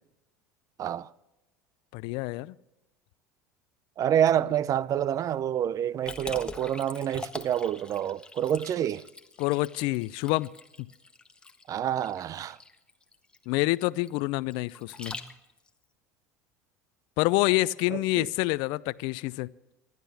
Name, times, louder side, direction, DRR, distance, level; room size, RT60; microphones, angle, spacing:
voice 1, 0.8-1.1 4.0-9.1 11.7-12.6 17.9-18.3, right 10 dB, 40° right, 0.6 m, -28 dB
voice 2, 1.9-2.5 9.4-10.5 10.8-10.9 13.5-15.1 17.2-19.5, left 20 dB, 65° left, 0.5 m, -27 dB
Liquid, 6.1-15.7, left 3 dB, 10° left, 1.3 m, -43 dB
26.0 x 12.0 x 3.5 m
hypercardioid pair, 80°, 9 cm